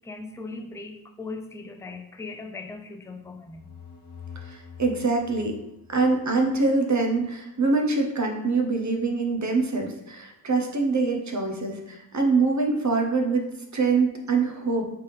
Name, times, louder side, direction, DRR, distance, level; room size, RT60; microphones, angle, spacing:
voice 1, 0.0-3.7, left 3 dB, 10° left, 0.3 m, -39 dB
sound 1, 3.2-6.8, left 7 dB, 80° left, 0.7 m, -46 dB
voice 2, 4.4-5.6 5.9-13.4 13.7-14.9, right 3 dB, 45° right, 0.8 m, -24 dB
4.3 x 3.4 x 3.2 m
wide cardioid pair, 60°, 39 cm